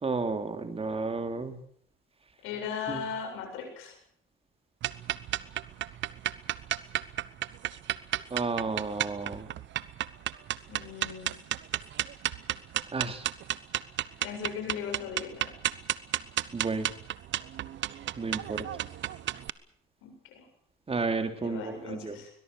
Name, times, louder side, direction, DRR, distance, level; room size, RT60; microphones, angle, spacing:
voice 1, 0.0-1.6 2.9-3.0 8.3-9.5 12.9-13.3 16.5-16.9 18.2-18.6 20.9-22.2, right 4 dB, 30° right, 8 dB, 3.0 m, -32 dB
voice 2, 2.4-4.0 10.7-11.3 14.2-15.5 20.0-20.5 21.4-22.3, left 7 dB, 85° left, 4 dB, 7.7 m, -38 dB
sound 1, 4.8-19.5, right 13 dB, 65° right, 1.0 m, -33 dB
22.0 x 21.0 x 6.8 m, 0.63 s
cardioid pair, 85°, 20 cm